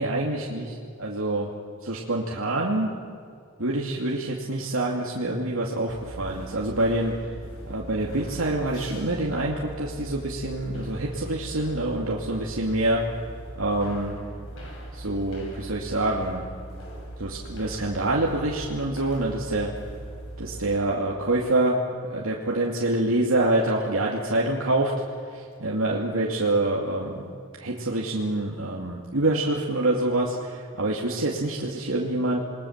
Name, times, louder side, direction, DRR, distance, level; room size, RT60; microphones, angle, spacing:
voice 1, 0.0-1.5 1.8-2.9 3.6-7.2 7.6-13.0 13.6-14.2 14.9-16.4 17.2-19.7 20.4-21.8 22.1-24.9 25.3-27.3 27.6-32.4, right 2 dB, 80° right, -2 dB, 2.6 m, -26 dB
sound 1, 5.9-20.7, right 1 dB, 65° left, 7.0 m, -40 dB
28.5 x 21.0 x 7.4 m, 2.2 s
head